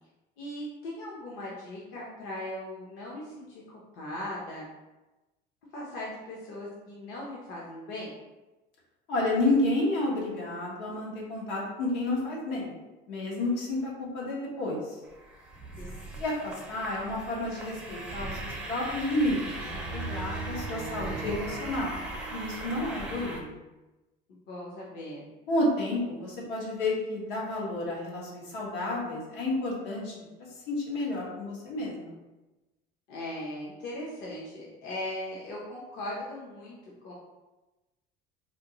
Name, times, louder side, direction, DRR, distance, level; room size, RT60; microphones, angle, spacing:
voice 1, 0.4-4.6 5.7-8.1 13.4-13.5 15.8-16.3 24.5-25.3 33.1-37.1, left 1 dB, 55° left, -4 dB, 0.8 m, -39 dB
voice 2, 9.1-12.7 13.1-15.0 16.2-21.9 22.3-23.6 25.5-30.1 30.7-32.1, left 2 dB, 85° left, -3 dB, 1.3 m, -30 dB
sound 1, 15.0-23.4, right 2 dB, 5° right, 0.4 m, -38 dB
4.3 x 2.5 x 2.9 m, 1.1 s
cardioid pair, 175°, 20 cm